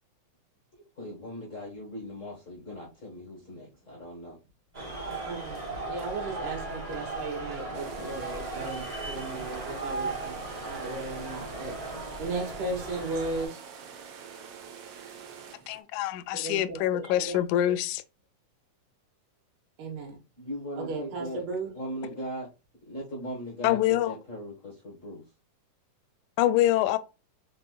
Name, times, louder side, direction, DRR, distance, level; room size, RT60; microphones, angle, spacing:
voice 1, 1.0-4.4 20.4-21.4 21.7-22.5 22.9-25.2, equal, 60° left, 0.7 m, -39 dB
sound 1, 4.7-13.5, right 2 dB, 25° right, 0.8 m, -37 dB
voice 2, 5.2-11.8 12.2-13.6 16.4-17.8 19.8-20.2 20.8-21.7, right 3 dB, 90° right, 2.7 m, -36 dB
sound 2, 7.7-15.8, right 7 dB, 70° right, 1.3 m, -46 dB
voice 3, 15.7-18.0 23.6-24.2 26.4-27.0, left 13 dB, 80° left, 1.9 m, -25 dB
5.2 x 4.1 x 2.3 m
omnidirectional pair, 3.5 m